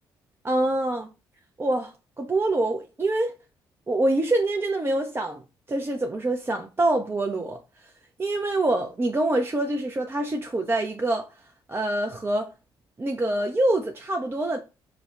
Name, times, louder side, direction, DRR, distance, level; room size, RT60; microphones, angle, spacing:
voice 1, 0.4-1.1 1.6-3.3 3.9-5.4 5.7-7.6 8.2-11.3 11.7-12.5 13.0-14.6, right 2 dB, 20° right, 0.4 m, -25 dB
4.9 x 2.0 x 2.3 m
figure-of-eight pair, 45°, 12 cm